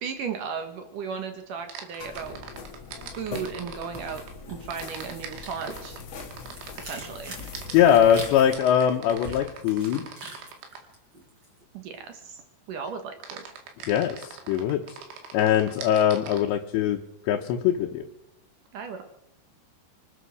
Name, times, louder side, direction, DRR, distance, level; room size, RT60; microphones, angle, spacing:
voice 1, 0.0-2.4 3.2-4.2 4.5-6.0 6.8-7.3 11.7-12.4 12.7-13.4 18.7-19.0, right 6 dB, 65° right, 6 dB, 2.4 m, -35 dB
sound 1, 1.7-4.3 4.7-10.9 13.2-16.4, right 6 dB, 90° right, 4.5 m, -42 dB
sound 2, 2.0-8.6, left 4 dB, 50° left, 1.9 m, -42 dB
sound 3, 2.8-3.4 3.7-11.6 11.9-12.3, right 1 dB, 25° right, 4.2 m, -45 dB
voice 2, 7.7-10.0 13.9-14.8 15.3-17.0 17.3-18.0, left 9 dB, 80° left, 1 dB, 3.3 m, -22 dB
24.5 x 9.1 x 6.4 m, 0.86 s
omnidirectional pair, 5.1 m